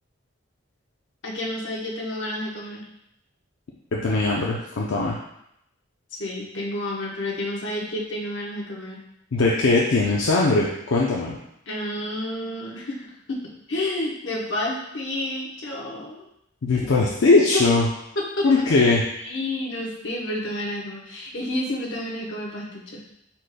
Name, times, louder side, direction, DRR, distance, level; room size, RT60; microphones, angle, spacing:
voice 1, 1.2-2.9 6.1-9.0 11.7-16.3 17.5-17.6 18.2-18.7 19.2-23.0, left 1 dB, 70° left, -3 dB, 1.0 m, -30 dB
voice 2, 3.9-5.2 9.3-11.4 16.6-17.9 18.4-19.0, left 3 dB, 85° left, -4 dB, 0.6 m, -20 dB
4.9 x 4.2 x 2.2 m, 0.78 s
head